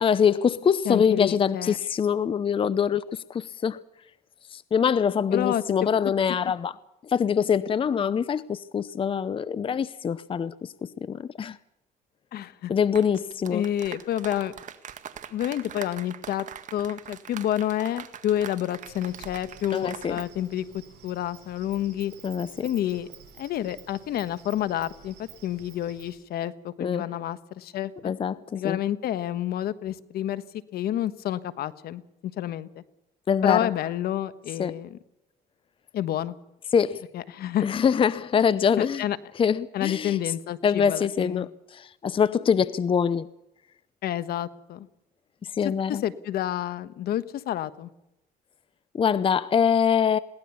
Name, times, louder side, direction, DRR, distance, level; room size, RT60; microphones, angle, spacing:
voice 1, 0.0-3.8 4.5-6.7 7.1-11.6 12.7-13.6 19.7-20.2 22.2-22.5 26.8-27.1 28.0-28.8 33.3-33.7 34.6-34.8 36.7-37.0 37.6-39.0 39.4-40.2 40.6-43.3 45.4-46.0 48.9-50.2, left 7 dB, 30° left, 0.7 m, -24 dB
voice 2, 0.8-1.8 5.3-5.6 12.3-12.7 13.5-14.5 15.3-16.4 16.7-22.1 22.6-23.1 23.4-28.1 28.5-30.4 30.7-32.8 33.4-35.0 35.9-36.3 37.1-37.7 38.8-39.2 39.7-41.5 44.0-44.9 45.6-47.9, left 11 dB, 65° left, 1.3 m, -29 dB
sound 1, 12.8-20.3 20.6-20.8, right 8 dB, 45° right, 1.8 m, -42 dB
Insect, 18.8-26.2, right 8 dB, 80° right, 7.9 m, -50 dB
22.0 x 17.5 x 7.0 m
cardioid pair, 110°, 17 cm